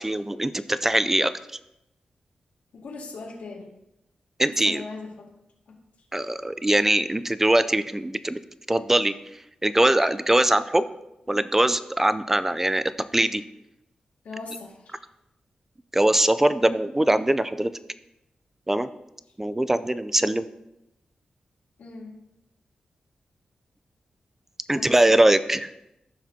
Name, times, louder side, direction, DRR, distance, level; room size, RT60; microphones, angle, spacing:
voice 1, 0.0-1.3 4.4-4.8 6.1-8.4 8.7-9.1 9.6-10.8 11.3-12.8 13.1-13.4 15.9-17.7 18.7-18.9 19.4-20.5 24.7-25.7, right 1 dB, 15° right, 13 dB, 0.4 m, -22 dB
voice 2, 2.7-3.7 4.5-5.3 5.7-5.8 14.2-15.0 21.8-22.2 24.7-25.0, left 3 dB, 85° left, -2 dB, 2.0 m, -39 dB
14.5 x 5.9 x 2.8 m, 0.89 s
cardioid pair, 85°, 3 cm